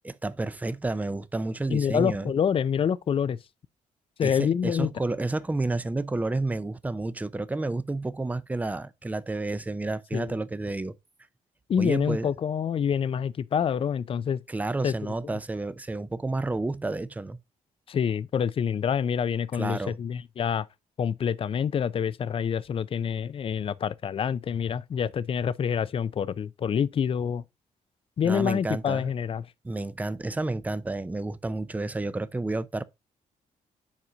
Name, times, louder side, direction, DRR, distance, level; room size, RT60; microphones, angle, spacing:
voice 1, 0.0-2.3 4.2-10.9 11.8-12.3 14.5-17.4 19.6-20.0 28.2-29.1 29.6-32.8, right 2 dB, 10° right, 0.5 m, -30 dB
voice 2, 1.7-3.4 4.2-4.9 10.1-10.4 11.7-14.4 14.8-14.9 17.9-20.7 21.0-27.4 28.2-29.5, left 7 dB, 45° left, 0.4 m, -27 dB
7.3 x 4.8 x 3.8 m
cardioid pair, 95°, 13 cm